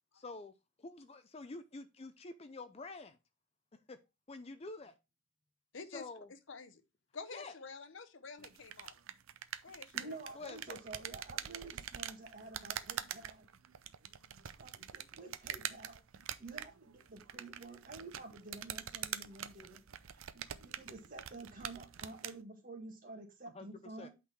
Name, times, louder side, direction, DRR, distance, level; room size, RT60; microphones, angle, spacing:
voice 1, 0.1-0.5 0.8-3.2 3.7-4.0 4.3-4.9 5.9-6.3 7.3-7.5 10.3-10.8 23.5-24.1, left 3 dB, 30° left, 0.5 m, -48 dB
voice 2, 6.5-6.8 7.1-8.9 9.6-10.2, left 4 dB, 60° left, 0.8 m, -48 dB
sound 1, 8.4-22.4, right 10 dB, 80° right, 0.6 m, -45 dB
voice 3, 9.7-13.5 14.6-24.1, right 2 dB, 40° right, 2.0 m, -50 dB
8.4 x 4.0 x 4.5 m
head